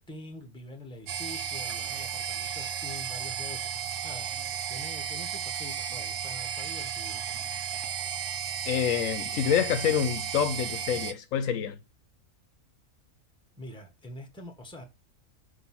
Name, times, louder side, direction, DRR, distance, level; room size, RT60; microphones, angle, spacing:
voice 1, 0.0-7.4 13.6-14.8, left 1 dB, 5° left, 0.8 m, -45 dB
sound 1, 1.1-11.1, right 8 dB, 80° right, 1.1 m, -34 dB
voice 2, 8.7-11.8, left 8 dB, 75° left, 0.9 m, -27 dB
6.0 x 2.8 x 5.5 m
omnidirectional pair, 1.5 m